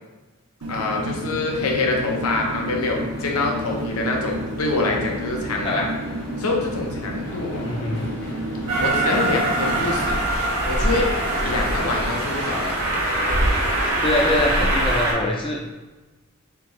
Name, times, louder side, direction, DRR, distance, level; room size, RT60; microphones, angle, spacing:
sound 1, 0.6-10.1, right 1 dB, 85° right, 0.6 m, -31 dB
voice 1, 0.7-5.9 6.4-7.7 8.8-10.2 10.7-11.1 11.4-12.8, left 3 dB, 85° left, 1 dB, 0.7 m, -25 dB
sound 2, 1.5-14.7, left 1 dB, 50° left, 1.0 m, -38 dB
voice 2, 7.6-8.1 14.0-15.7, left 1 dB, 25° left, -1 dB, 0.3 m, -24 dB
Train, 8.7-15.1, right 1 dB, 65° right, 1.3 m, -23 dB
3.5 x 3.3 x 3.1 m, 1.2 s
head